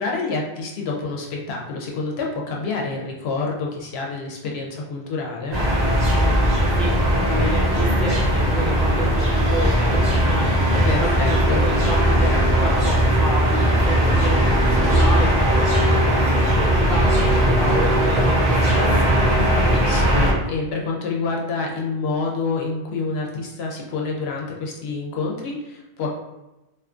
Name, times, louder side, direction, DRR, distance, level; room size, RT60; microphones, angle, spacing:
voice 1, 0.0-5.6 10.8-11.6 19.5-26.1, left 3 dB, 70° left, -1 dB, 0.8 m, -28 dB
sound 1, 5.5-20.3, equal, 45° right, 0.8 m, -18 dB
voice 2, 5.9-10.5 11.6-17.1 17.5-19.1, equal, ahead, -8 dB, 0.7 m, -30 dB
2.6 x 2.4 x 2.4 m, 0.99 s
omnidirectional pair, 1.1 m